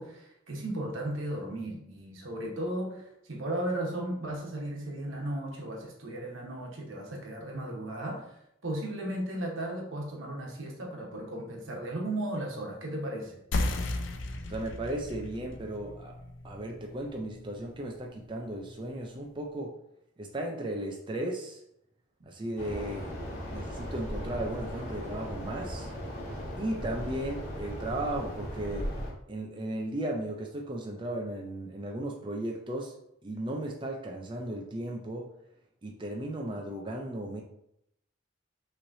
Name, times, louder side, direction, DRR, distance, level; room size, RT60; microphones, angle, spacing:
voice 1, 0.0-13.4, right 1 dB, 80° right, -1 dB, 1.2 m, -35 dB
sound 1, 13.5-18.6, left 2 dB, 65° left, 0.5 m, -36 dB
voice 2, 14.4-16.1 16.4-19.7 20.2-21.6 22.2-25.9 26.6-28.9 29.3-32.9 33.2-35.3 35.8-37.4, right 1 dB, 25° right, 0 dB, 0.4 m, -35 dB
sound 2, 22.6-29.1, equal, 35° left, 1.3 m, -37 dB
5.8 x 3.2 x 2.7 m, 0.76 s
head